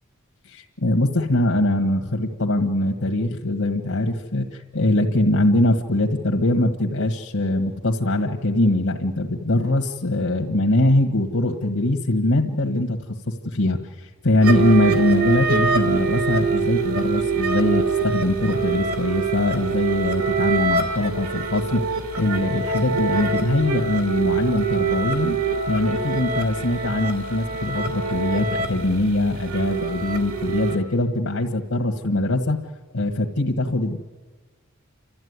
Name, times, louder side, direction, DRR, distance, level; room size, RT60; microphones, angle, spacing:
voice 1, 0.4-13.0 13.3-21.8 22.1-25.4 25.7-32.6 32.9-34.0, left 1 dB, 80° left, 1 dB, 1.6 m, -22 dB
sound 1, 14.4-30.8, right 4 dB, 90° right, 3.0 m, -24 dB
30.0 x 13.5 x 9.6 m, 1.4 s
head